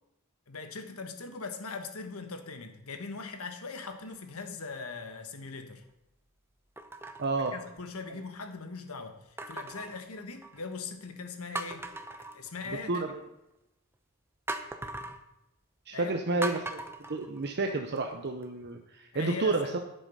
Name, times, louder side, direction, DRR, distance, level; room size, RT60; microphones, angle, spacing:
voice 1, 0.5-5.8 7.3-11.9 12.3-13.0 15.9-16.1 19.1-19.8, left 4 dB, 70° left, 7 dB, 1.3 m, -40 dB
sound 1, 3.8-4.3 5.0-5.1 6.8-8.2 9.4-10.7 11.1-11.2 11.5-13.0 14.5-15.2 16.4-18.0 18.4-18.5, right 2 dB, 10° right, 0.7 m, -40 dB
voice 2, 7.2-7.5 12.9-13.1 15.9-16.8 17.1-19.8, right 3 dB, 50° right, 4 dB, 0.8 m, -30 dB
10.5 x 7.6 x 5.4 m, 0.88 s
head